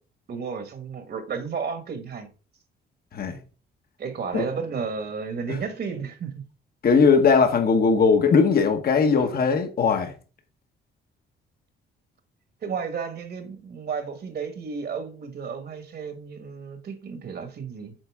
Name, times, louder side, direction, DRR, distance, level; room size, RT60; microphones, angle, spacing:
voice 1, 0.3-2.3 4.0-6.4 9.2-9.3 12.6-17.9, right 5 dB, 55° right, 1.6 m, -33 dB
voice 2, 6.8-10.1, left 5 dB, 50° left, 1.2 m, -19 dB
7.8 x 4.1 x 3.6 m
cardioid pair, 90°, 20 cm